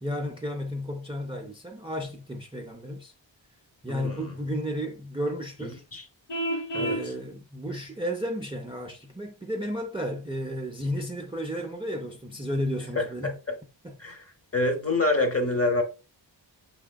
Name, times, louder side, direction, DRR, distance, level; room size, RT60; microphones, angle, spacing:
voice 1, 0.0-3.1 3.8-5.8 6.7-13.4 13.8-14.0, equal, 15° right, 0.4 m, -33 dB
voice 2, 3.9-4.2 5.6-6.0 6.7-7.0 13.0-13.3 14.0-14.2 14.5-15.8, left 2 dB, 30° left, 0.8 m, -26 dB
Vehicle horn car horn honking, 6.3-7.1, right 1 dB, 65° left, 0.8 m, -29 dB
5.8 x 3.4 x 2.2 m
wide cardioid pair, 130°, 45 cm